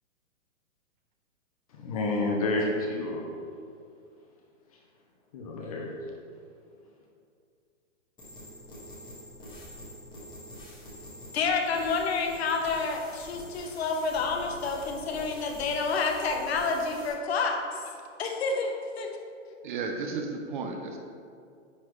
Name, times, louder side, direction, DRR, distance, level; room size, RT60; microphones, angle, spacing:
voice 1, 1.8-3.2 5.3-5.9, left 2 dB, 30° left, 0 dB, 0.5 m, -29 dB
sound 1, 8.2-17.1, equal, 10° left, 1.2 m, -46 dB
voice 2, 11.3-17.8 18.2-19.2, left 4 dB, 55° left, 3 dB, 0.9 m, -29 dB
voice 3, 19.6-21.0, right 4 dB, 40° right, 3 dB, 0.6 m, -33 dB
9.7 x 3.8 x 3.1 m, 2.4 s
hypercardioid pair, 160°, 38 cm